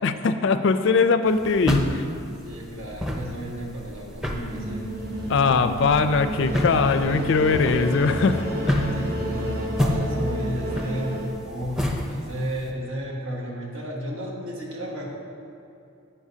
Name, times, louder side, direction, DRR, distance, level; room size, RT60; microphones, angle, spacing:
voice 1, 0.0-2.0 5.3-8.9, left 4 dB, 60° left, 10 dB, 0.4 m, -21 dB
sound 1, 1.3-12.7, left 1 dB, 5° right, 0.6 m, -30 dB
voice 2, 2.4-4.9 8.8-15.1, equal, 75° right, -2 dB, 1.5 m, -33 dB
sound 2, 4.5-11.3, right 1 dB, 50° right, 1.1 m, -31 dB
9.9 x 8.6 x 2.8 m, 2.6 s
head